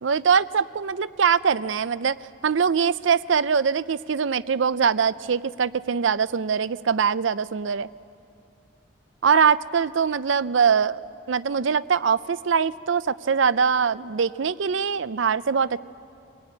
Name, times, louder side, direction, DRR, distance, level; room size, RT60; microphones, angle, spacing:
voice 1, 0.0-2.2 2.4-7.9 9.2-11.0 11.3-15.8, right 6 dB, 70° right, 16 dB, 0.5 m, -22 dB
25.0 x 18.5 x 9.5 m, 2.4 s
head